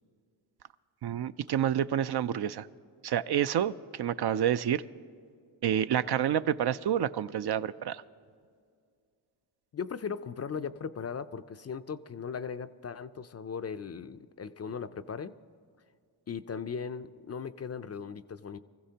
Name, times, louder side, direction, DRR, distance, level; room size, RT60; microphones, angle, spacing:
voice 1, 1.0-2.7 3.0-4.8 5.6-8.0, right 10 dB, 60° right, 13 dB, 0.5 m, -28 dB
voice 2, 9.7-15.3 16.3-18.6, left 6 dB, 35° left, 11 dB, 0.4 m, -38 dB
24.5 x 15.0 x 2.8 m, 2.2 s
cardioid pair, 65°, 46 cm